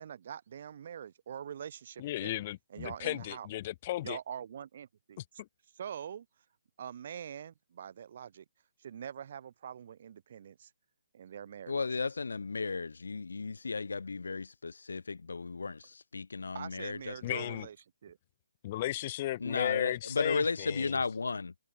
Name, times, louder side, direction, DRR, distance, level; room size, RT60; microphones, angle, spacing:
voice 1, 0.0-2.4 2.7-3.5 4.0-5.2 5.7-6.3 6.8-8.4 8.8-10.7 11.1-11.8 16.5-17.8 18.0-18.2, right 8 dB, 50° right, 7.6 m, -44 dB
voice 2, 2.0-4.2 17.2-17.7 18.6-21.0, left 15 dB, 35° left, 2.9 m, -35 dB
voice 3, 11.7-17.5 19.4-21.5, left 4 dB, 80° left, 1.9 m, -34 dB
hypercardioid pair, 150°, 0 cm